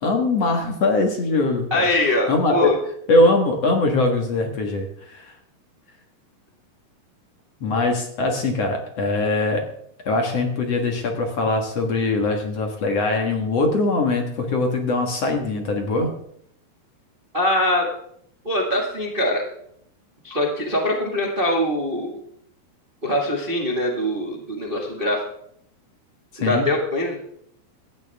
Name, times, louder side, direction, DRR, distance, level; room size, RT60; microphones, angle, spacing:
voice 1, 0.0-1.8 2.3-2.6 3.1-5.3 7.6-9.7 10.1-16.1 26.3-26.6, left 2 dB, 50° left, 3 dB, 2.1 m, -22 dB
voice 2, 1.7-2.8 17.3-17.9 18.4-19.4 20.2-22.1 23.0-25.2 26.4-27.2, left 1 dB, 70° right, 0 dB, 0.5 m, -22 dB
17.5 x 13.5 x 3.6 m, 0.70 s
omnidirectional pair, 4.8 m